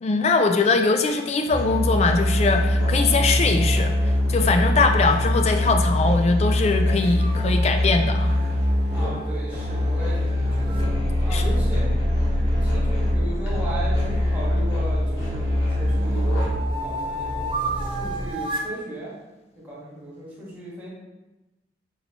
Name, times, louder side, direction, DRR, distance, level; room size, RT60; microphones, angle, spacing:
voice 1, 0.0-3.9 4.3-8.4 11.3-11.5, left 3 dB, 35° left, 6 dB, 0.3 m, -21 dB
Musical instrument, 1.5-16.8, left 1 dB, 80° left, 1.3 m, -23 dB
sound 1, 1.5-18.3, equal, 55° right, 0.8 m, -30 dB
sound 2, 7.0-10.9 13.8-15.1 15.6-18.8, right 2 dB, 30° right, 0.4 m, -35 dB
voice 2, 8.9-10.9 11.2-11.9 12.5-16.3 16.8-19.1 19.6-20.9, right 1 dB, 10° right, -8 dB, 1.4 m, -36 dB
5.3 x 2.8 x 2.8 m, 1.0 s
head